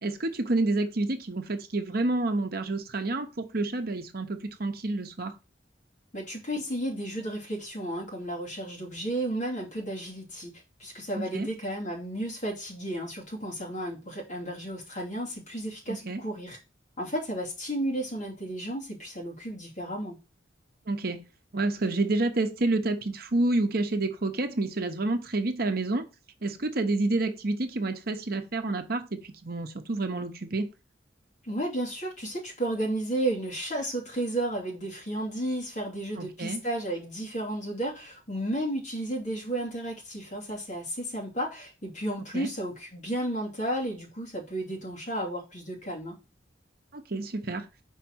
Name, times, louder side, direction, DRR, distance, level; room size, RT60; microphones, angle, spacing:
voice 1, 0.0-5.3 11.1-11.5 15.9-16.2 20.9-21.2 21.5-26.1 26.4-30.7 36.2-36.6 42.3-42.5 46.9-47.7, right 2 dB, 55° right, 0.9 m, -29 dB
voice 2, 6.1-10.5 10.8-16.6 17.0-20.1 31.4-46.2, right 1 dB, 40° left, 2.9 m, -33 dB
5.7 x 4.6 x 6.2 m
head